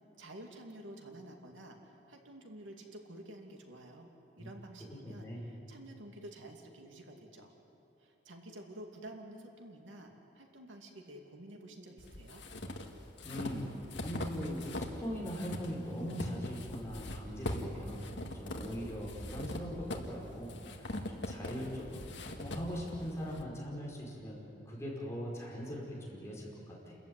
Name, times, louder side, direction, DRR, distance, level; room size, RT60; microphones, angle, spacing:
voice 1, 0.2-4.1 4.3-7.5 8.0-12.4, right 1 dB, 85° right, 2 dB, 2.5 m, -50 dB
voice 2, 5.0-5.5 13.2-13.7 14.0-20.5 20.8-22.1 22.3-27.0, equal, 15° left, -5 dB, 5.2 m, -41 dB
sound 1, 12.0-15.0 15.3-23.4, left 1 dB, 70° left, 1.9 m, -41 dB
29.0 x 14.5 x 9.6 m, 2.9 s
head